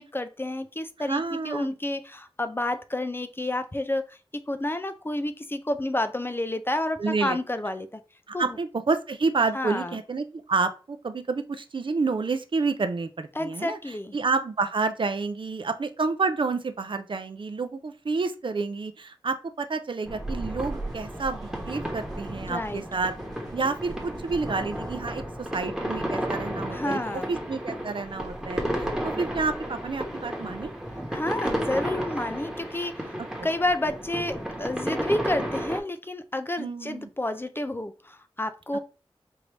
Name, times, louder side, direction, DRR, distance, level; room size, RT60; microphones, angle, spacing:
voice 1, 0.0-8.0 8.3-8.6 9.5-10.0 13.3-14.1 22.5-22.8 26.7-27.3 31.1-33.1 33.4-38.8, left 1 dB, 25° left, 9 dB, 0.4 m, -30 dB
voice 2, 1.1-1.7 7.0-7.4 8.3-13.8 14.1-23.1 23.5-30.7 36.6-37.1, right 4 dB, 60° right, 9 dB, 0.5 m, -29 dB
sound 1, 20.1-35.8, equal, 5° right, 1.1 m, -33 dB
sound 2, 20.6-25.0, right 2 dB, 40° right, 0.9 m, -47 dB
4.6 x 2.6 x 3.2 m, 0.33 s
wide cardioid pair, 80°, 10 cm